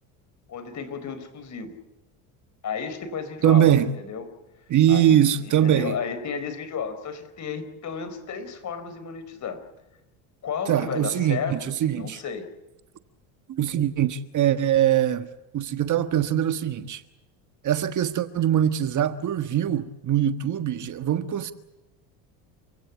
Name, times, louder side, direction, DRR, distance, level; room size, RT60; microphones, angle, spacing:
voice 1, 0.5-1.8 2.6-4.3 4.9-9.6 10.4-11.6 11.9-12.5, left 6 dB, 40° left, 4.7 m, -33 dB
voice 2, 3.4-3.9 4.7-5.9 10.7-12.2 13.5-15.3 15.5-17.0 17.6-21.5, right 10 dB, 45° right, 1.5 m, -22 dB
29.0 x 16.0 x 8.5 m
supercardioid pair, 95°, 42 cm